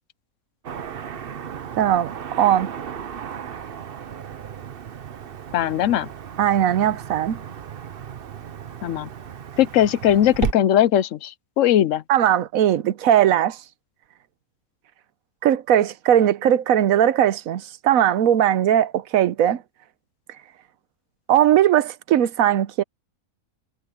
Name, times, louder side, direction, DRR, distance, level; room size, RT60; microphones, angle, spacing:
Car passing by / Traffic noise roadway noise, 0.6-10.5, right 8 dB, 50° right, 0.9 m, -35 dB
voice 1, 1.8-2.1 2.4-2.7 6.4-7.4 12.1-13.6 15.4-19.6 21.3-22.8, right 11 dB, 80° right, 1.2 m, -19 dB
voice 2, 5.5-6.1 8.8-9.1 9.6-12.0, left 11 dB, 70° left, 1.0 m, -19 dB
omnidirectional pair, 1.5 m